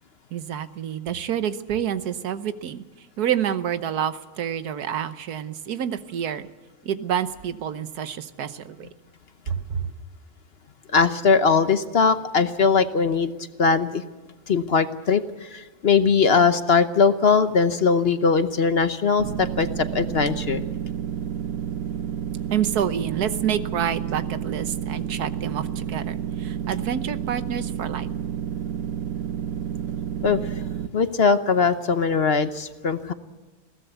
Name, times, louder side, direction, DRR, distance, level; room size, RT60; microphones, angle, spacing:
voice 1, 0.3-2.8 3.2-6.5 6.8-8.9 9.5-9.9 22.5-28.1, right 9 dB, 85° right, 12 dB, 1.5 m, -28 dB
voice 2, 10.9-13.3 13.6-14.0 14.5-20.6 30.2-30.5 30.9-33.1, left 5 dB, 45° left, 11 dB, 1.0 m, -20 dB
sound 1, 19.2-30.9, right 9 dB, 70° right, 1.3 m, -30 dB
21.0 x 16.5 x 8.1 m, 1.2 s
omnidirectional pair, 1.6 m